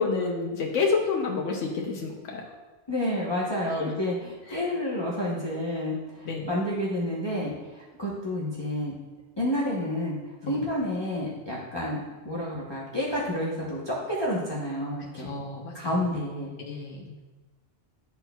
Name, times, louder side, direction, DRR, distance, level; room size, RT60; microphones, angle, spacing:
voice 1, 0.0-2.4 3.8-3.9 4.5-4.6 6.3-6.6 10.4-10.7 15.2-15.7 16.6-17.2, left 4 dB, 90° left, 0 dB, 1.1 m, -29 dB
voice 2, 2.9-8.9 9.4-10.2 10.5-15.3 15.7-16.5, left 1 dB, 25° left, -7 dB, 0.8 m, -30 dB
10.5 x 4.4 x 2.3 m, 1.2 s
omnidirectional pair, 1.2 m